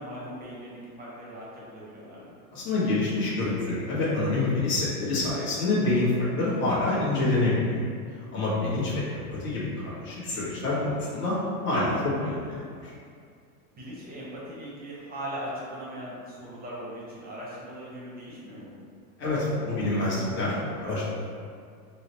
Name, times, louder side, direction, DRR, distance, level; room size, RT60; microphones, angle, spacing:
voice 1, 0.0-2.3 8.7-8.9 11.7-12.4 13.7-18.7, equal, 20° right, -7 dB, 0.8 m, -40 dB
voice 2, 2.5-7.8 8.3-11.3 11.6-12.9 19.2-21.1, left 2 dB, 25° left, -8 dB, 0.8 m, -27 dB
3.9 x 2.0 x 2.8 m, 2.2 s
supercardioid pair, 125°, 45 cm